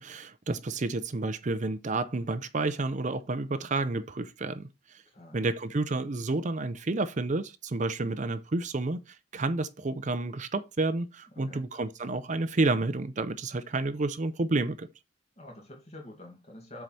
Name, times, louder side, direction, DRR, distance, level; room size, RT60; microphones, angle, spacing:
voice 1, 0.0-5.0 5.3-14.9, right 2 dB, 40° right, 0.6 m, -30 dB
voice 2, 15.4-16.8, left 1 dB, 35° left, 2.3 m, -47 dB
7.7 x 4.8 x 4.1 m
head